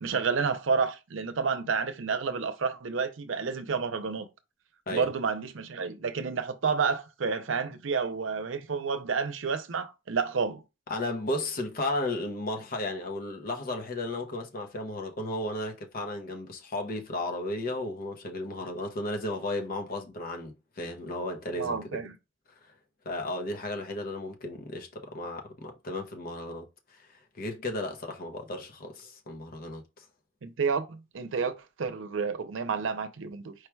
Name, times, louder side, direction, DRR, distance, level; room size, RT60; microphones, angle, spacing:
voice 1, 0.0-4.3 4.9-10.6 21.6-22.2 30.4-31.5 31.8-33.5, right 5 dB, 80° right, 0.6 m, -30 dB
voice 2, 10.9-21.8 23.0-26.7 26.9-27.0 27.4-30.0, left 1 dB, 50° left, 0.8 m, -34 dB
4.8 x 2.3 x 4.5 m
head